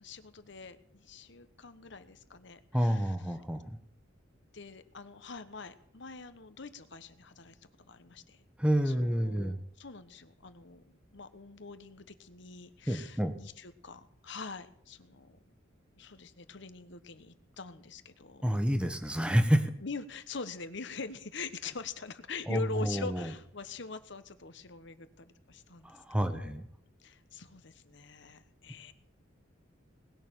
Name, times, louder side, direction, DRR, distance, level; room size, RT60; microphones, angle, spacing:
voice 1, 0.0-3.1 4.5-8.4 8.8-15.4 16.0-18.7 19.8-25.9 26.3-26.6 27.0-28.9, left 4 dB, 60° left, 11 dB, 1.2 m, -44 dB
voice 2, 2.7-3.8 8.6-9.6 12.9-13.3 18.4-19.7 22.5-23.3 25.8-26.7, equal, 5° right, 8 dB, 1.3 m, -29 dB
20.0 x 6.7 x 9.0 m, 0.70 s
head